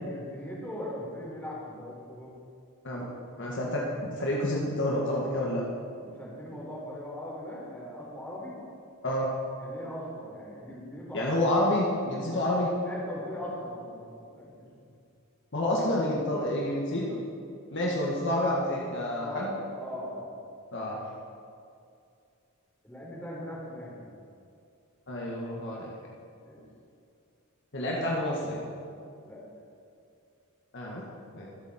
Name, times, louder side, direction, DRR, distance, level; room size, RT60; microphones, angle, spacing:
voice 1, 0.0-2.3 5.9-8.5 9.6-11.3 12.8-14.8 19.2-20.3 22.8-24.1 26.4-26.6 29.2-29.4, left 1 dB, 10° left, -6 dB, 4.1 m, -40 dB
voice 2, 3.4-5.6 9.0-9.3 11.1-12.7 15.5-17.3 17.7-19.5 20.7-21.0 25.1-25.9 27.7-28.7 30.7-31.0 31.3-31.5, left 1 dB, 55° left, -3 dB, 1.9 m, -29 dB
24.5 x 8.4 x 4.5 m, 2.5 s
head